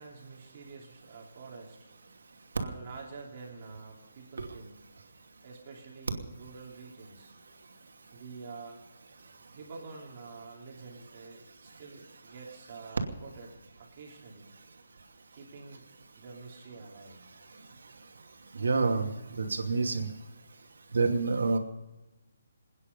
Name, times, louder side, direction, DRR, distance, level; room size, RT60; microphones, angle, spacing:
voice 1, 0.0-1.9 2.5-4.8 5.4-7.3 8.1-8.8 9.5-14.5 15.3-15.8 16.2-17.3, right 4 dB, 30° right, -2 dB, 3.2 m, -47 dB
voice 2, 18.5-19.1 19.3-20.1 20.9-21.6, right 4 dB, 75° right, 3 dB, 2.6 m, -27 dB
27.5 x 9.8 x 5.4 m, 1.0 s
hypercardioid pair, 175°, 0 cm